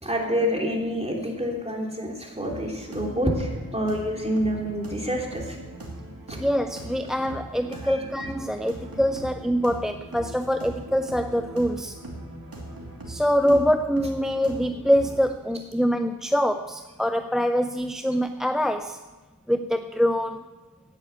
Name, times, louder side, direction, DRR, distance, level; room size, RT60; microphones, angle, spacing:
voice 1, 0.0-5.6 6.3-6.4 7.8-8.0 13.4-13.6, equal, 20° right, -1 dB, 3.1 m, -27 dB
sound 1, 2.4-15.2, right 1 dB, 80° right, 2.7 m, -40 dB
voice 2, 6.3-12.0 13.1-19.0 19.5-20.4, equal, ahead, 9 dB, 0.5 m, -24 dB
9.8 x 9.5 x 8.2 m, 1.2 s
wide cardioid pair, 45°, 35 cm